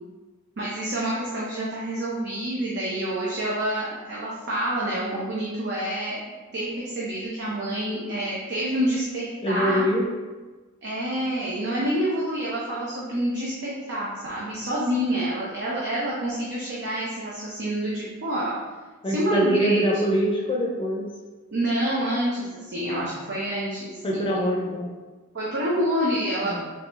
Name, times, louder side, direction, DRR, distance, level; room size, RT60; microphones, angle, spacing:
voice 1, 0.6-6.2 6.5-9.8 10.8-18.5 19.0-19.8 21.5-24.7 25.3-26.6, right 1 dB, 50° right, -6 dB, 0.7 m, -27 dB
voice 2, 9.4-10.1 19.0-21.1 22.9-23.1 24.0-24.9 26.5-26.6, equal, 25° left, -1 dB, 0.6 m, -24 dB
3.8 x 3.3 x 3.0 m, 1.3 s
head